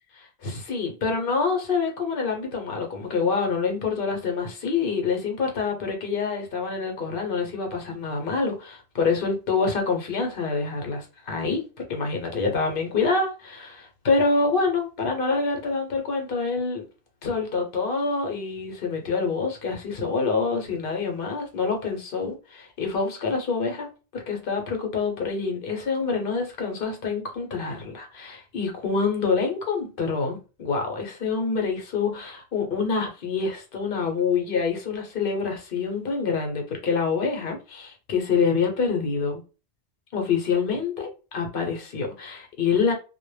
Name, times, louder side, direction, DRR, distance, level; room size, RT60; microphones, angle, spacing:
voice 1, 0.1-16.8 17.2-23.9 24.1-39.4 40.1-42.9, left 4 dB, 60° left, 0.8 m, -26 dB
2.1 x 2.0 x 3.1 m
omnidirectional pair, 1.1 m